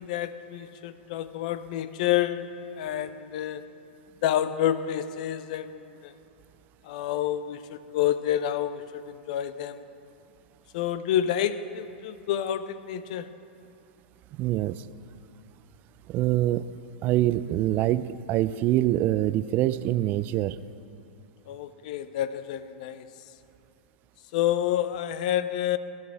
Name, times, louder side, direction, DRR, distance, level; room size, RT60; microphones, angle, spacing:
voice 1, 0.0-3.6 4.2-6.1 6.8-9.8 10.7-13.3 21.5-23.1 24.3-25.8, left 11 dB, 60° left, 13 dB, 0.6 m, -29 dB
voice 2, 14.4-14.9 16.1-16.7 17.0-20.6, right 14 dB, 40° right, 16 dB, 0.3 m, -25 dB
17.0 x 11.0 x 3.4 m, 2.7 s
hypercardioid pair, 105°, 5 cm